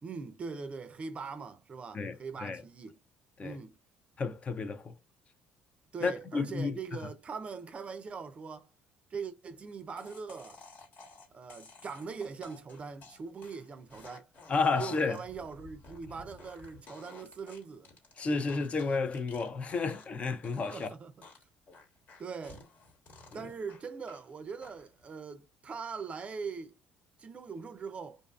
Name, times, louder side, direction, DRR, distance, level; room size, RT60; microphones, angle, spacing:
voice 1, 0.0-3.0 3.4-3.8 5.9-8.7 9.1-10.6 11.3-14.3 14.8-17.9 20.7-21.3 22.2-22.7 23.3-26.8 27.2-28.2, right 5 dB, 35° right, 0.4 m, -41 dB
voice 2, 4.2-4.9 6.0-6.7 14.5-15.2 18.2-20.9, left 4 dB, 35° left, 0.4 m, -31 dB
sound 1, 10.0-20.2 20.4-20.9 21.2-24.2 24.6-25.0, left 3 dB, 55° left, 1.2 m, -54 dB
2.5 x 2.4 x 2.3 m
supercardioid pair, 95°, 4 cm